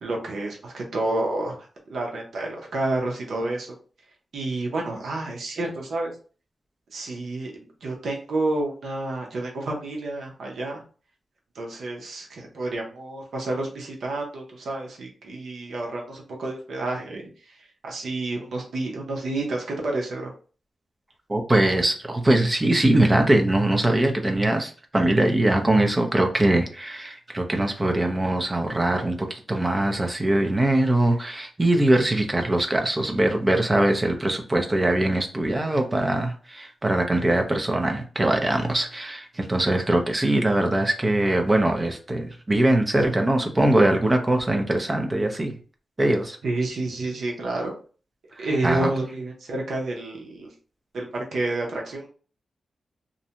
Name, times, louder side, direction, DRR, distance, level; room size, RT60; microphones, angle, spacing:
voice 1, 0.0-1.6 1.9-3.8 4.3-6.1 6.9-10.8 11.6-17.3 17.8-20.3 46.4-47.7 48.4-50.5 50.9-52.1, right 2 dB, 75° right, 0 dB, 0.7 m, -29 dB
voice 2, 21.3-45.6 46.0-46.4 48.4-48.9, right 1 dB, 20° right, 3 dB, 0.5 m, -22 dB
2.5 x 2.1 x 2.8 m, 0.38 s
wide cardioid pair, 135°, 0 cm